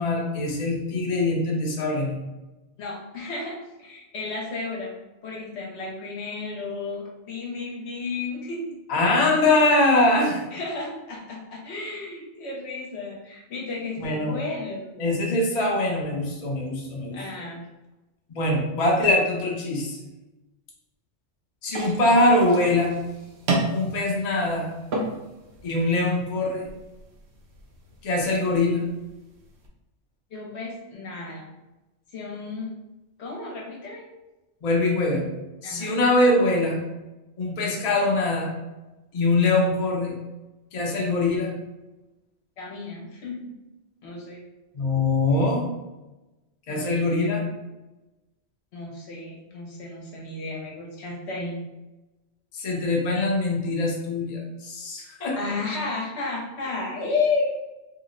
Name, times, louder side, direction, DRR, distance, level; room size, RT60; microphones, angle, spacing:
voice 1, 0.0-2.1 8.9-10.4 14.0-14.4 15.0-17.2 18.3-20.0 21.6-22.9 23.7-24.7 25.6-26.6 28.0-28.8 34.6-35.2 35.6-36.8 37.4-38.5 39.1-40.1 40.7-41.5 44.7-45.7 46.7-47.5 52.5-55.4, left 2 dB, 45° left, -2 dB, 0.6 m, -23 dB
voice 2, 2.8-5.0 5.2-8.6 10.5-15.0 17.1-17.6 21.7-22.0 30.3-31.5 32.1-32.7 33.2-34.1 35.6-35.9 42.6-43.4 44.0-44.4 46.7-47.3 48.7-51.6 55.3-57.5, left 3 dB, 70° left, -2 dB, 1.0 m, -33 dB
sound 1, 21.7-29.7, right 2 dB, 65° right, 0.9 m, -33 dB
2.8 x 2.0 x 3.7 m, 1.1 s
omnidirectional pair, 1.2 m